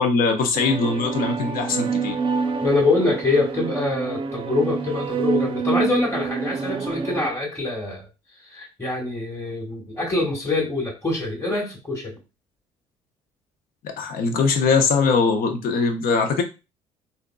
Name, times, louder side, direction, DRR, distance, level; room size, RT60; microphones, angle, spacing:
voice 1, 0.0-2.2 13.8-16.4, left 4 dB, 60° left, 6 dB, 0.7 m, -21 dB
sound 1, 0.5-7.3, right 5 dB, 30° right, 0.5 m, -27 dB
voice 2, 2.6-8.0 8.4-12.2, left 3 dB, 15° left, -2 dB, 1.3 m, -24 dB
3.4 x 2.7 x 2.2 m, 0.28 s
hypercardioid pair, 50°, 17 cm